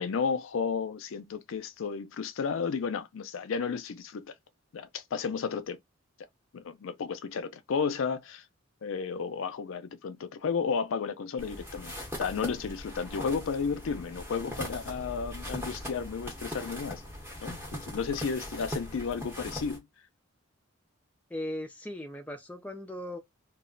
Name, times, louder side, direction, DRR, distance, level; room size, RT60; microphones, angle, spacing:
voice 1, 0.0-4.3 4.7-5.8 6.5-8.4 8.8-11.9 12.2-17.0 17.4-19.9, left 5 dB, 70° left, 0.4 m, -33 dB
sound 1, 11.4-19.8, left 1 dB, 10° right, 0.8 m, -40 dB
voice 2, 21.3-23.2, left 1 dB, 5° left, 0.4 m, -38 dB
2.3 x 2.1 x 3.7 m
head